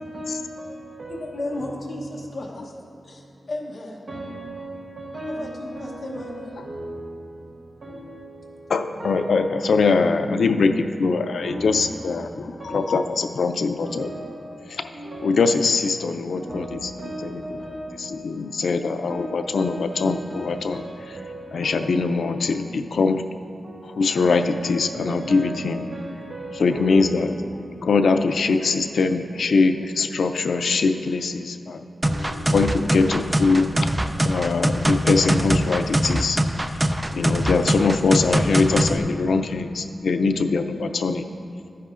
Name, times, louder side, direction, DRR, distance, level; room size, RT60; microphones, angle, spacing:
voice 1, 0.0-0.4 1.0-1.1 4.1-5.4 6.2-6.3 9.0-9.2 11.4-11.6 12.6-12.8 14.0-14.2 15.1-15.3 16.5-16.7 17.0-17.8 19.1-19.3 19.6-20.9 21.7-21.9 24.2-25.6 25.9-27.0 28.0-28.3, right 1 dB, 45° right, 1.0 m, -35 dB
voice 2, 1.1-2.7 3.0-4.0 5.4-6.5, left 1 dB, 45° left, 1.0 m, -34 dB
voice 3, 8.7-10.7 11.0-14.1 14.7-14.9 15.2-16.9 17.2-20.8 21.5-23.2 23.8-25.8 26.6-27.4 27.8-31.8 32.5-33.7 34.2-36.4 37.1-41.3, left 4 dB, 90° left, 0.4 m, -22 dB
sound 1, 32.0-39.0, right 1 dB, 10° right, 0.3 m, -22 dB
12.5 x 10.0 x 2.5 m
wide cardioid pair, 165°, 0 cm